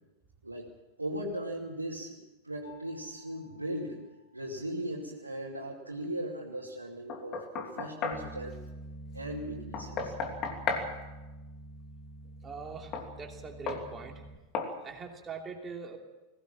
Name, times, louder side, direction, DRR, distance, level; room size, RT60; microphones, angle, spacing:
voice 1, 1.0-4.0 4.3-8.6 9.1-10.1, right 1 dB, 80° right, -4 dB, 2.7 m, -38 dB
Mallet percussion, 2.6-5.1, left 5 dB, 75° left, 5.3 m, -58 dB
Knock, 7.1-8.3 9.7-10.9 12.9-13.1 13.7-13.9 14.5-14.8, left 5 dB, 35° left, 2.9 m, -34 dB
Bass guitar, 8.1-14.4, right 1 dB, 5° right, 2.0 m, -46 dB
voice 2, 12.4-14.2 14.8-16.0, right 5 dB, 20° right, 2 dB, 3.0 m, -42 dB
21.0 x 17.0 x 7.6 m, 1.1 s
figure-of-eight pair, 90°, 0 cm